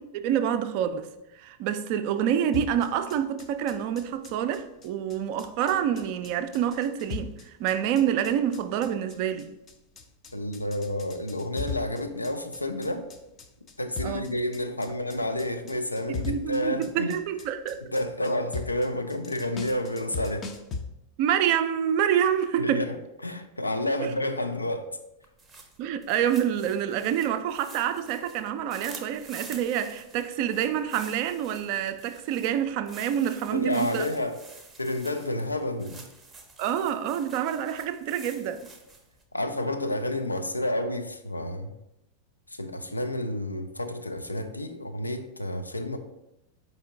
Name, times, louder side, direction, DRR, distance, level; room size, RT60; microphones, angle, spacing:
voice 1, 0.1-1.1 1.3-9.5 14.0-14.2 16.2-17.8 21.2-22.9 24.0-24.1 25.8-34.1 36.6-38.6, right 9 dB, 45° right, 0.3 m, -27 dB
sound 1, 2.5-20.8, left 4 dB, 25° left, 0.5 m, -39 dB
voice 2, 10.3-13.1 13.8-17.1 17.9-20.5 22.6-22.9 23.2-25.0 33.5-34.4 34.8-36.1 39.3-41.7 42.5-46.0, left 1 dB, 85° left, 0.3 m, -30 dB
sound 2, 25.2-39.2, right 3 dB, 15° right, 0.6 m, -48 dB
4.3 x 2.7 x 3.6 m
figure-of-eight pair, 90°, 0 cm